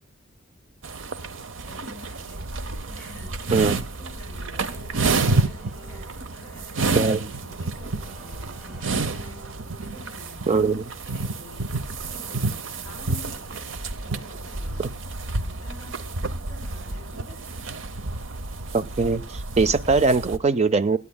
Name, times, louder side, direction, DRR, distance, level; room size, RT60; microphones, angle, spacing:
sound 1, 0.8-20.4, right 3 dB, 65° right, 0.8 m, -30 dB
voice 1, 1.6-2.5 2.9-9.5 9.8-10.7 11.0-11.8 12.0-13.7 14.0-15.0 15.3-17.6, left 2 dB, 10° left, 7.6 m, -47 dB
voice 2, 3.5-3.8 6.9-7.3 10.5-10.8 18.7-21.0, right 4 dB, 35° right, 0.5 m, -21 dB
Keyboard (musical), 4.2-11.5, right 1 dB, 5° right, 3.6 m, -52 dB
24.5 x 9.5 x 2.3 m
head